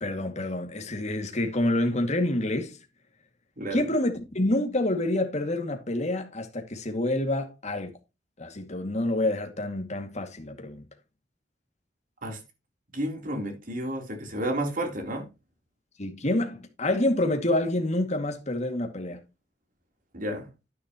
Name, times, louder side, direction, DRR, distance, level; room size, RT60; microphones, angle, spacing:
voice 1, 0.0-2.8 3.7-7.9 8.4-10.8 16.0-19.2, left 1 dB, 40° left, 2.3 m, -27 dB
voice 2, 12.9-15.3 20.1-20.5, right 1 dB, 50° right, 3.6 m, -31 dB
10.5 x 10.0 x 3.0 m
head